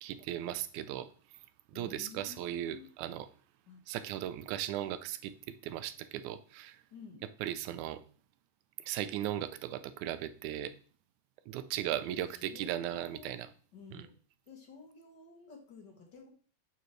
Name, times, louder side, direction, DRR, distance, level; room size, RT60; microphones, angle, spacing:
voice 1, 0.0-1.1 1.7-3.3 3.9-6.8 7.4-8.0 8.9-10.7 11.5-13.5 13.9-14.0, right 12 dB, 90° right, 13 dB, 2.0 m, -37 dB
voice 2, 1.7-2.9 3.7-3.8 6.9-7.2 12.2-13.4 13.7-14.1 14.5-16.3, left 5 dB, 45° left, 1 dB, 1.6 m, -52 dB
6.9 x 6.8 x 3.1 m, 0.41 s
omnidirectional pair, 3.4 m